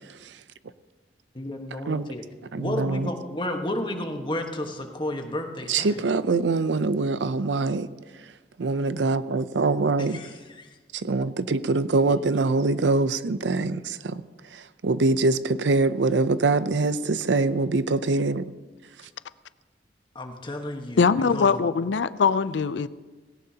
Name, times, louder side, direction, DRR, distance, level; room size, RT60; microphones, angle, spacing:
voice 1, 1.3-2.2 2.6-6.1 10.0-10.7 12.1-12.2 20.1-21.6, left 1 dB, 25° left, 1.3 m, -32 dB
voice 2, 2.5-3.1 5.7-7.9 8.6-10.2 10.9-14.2 14.5-18.4, right 3 dB, 85° right, 0.6 m, -24 dB
voice 3, 21.0-22.9, left 5 dB, 90° left, 0.5 m, -22 dB
18.0 x 17.0 x 2.9 m
head